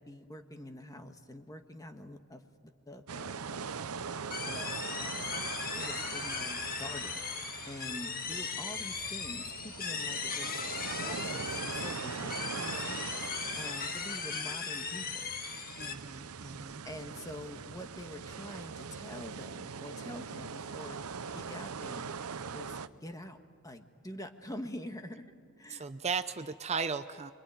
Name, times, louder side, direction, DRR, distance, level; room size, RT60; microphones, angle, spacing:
voice 1, 0.0-3.8 4.4-7.2 7.7-10.6 11.0-13.0 13.6-15.3 16.8-21.0 21.3-22.1 22.5-23.4 23.6-25.2 25.6-25.9, left 1 dB, 15° left, 6 dB, 1.5 m, -46 dB
sound 1, 3.1-22.9, right 5 dB, 80° right, 0.7 m, -42 dB
sound 2, 4.3-15.9, left 5 dB, 45° left, 1.6 m, -38 dB
voice 2, 15.8-16.8 25.7-27.3, right 5 dB, 30° right, 10 dB, 0.6 m, -36 dB
26.5 x 23.5 x 9.2 m, 2.2 s
head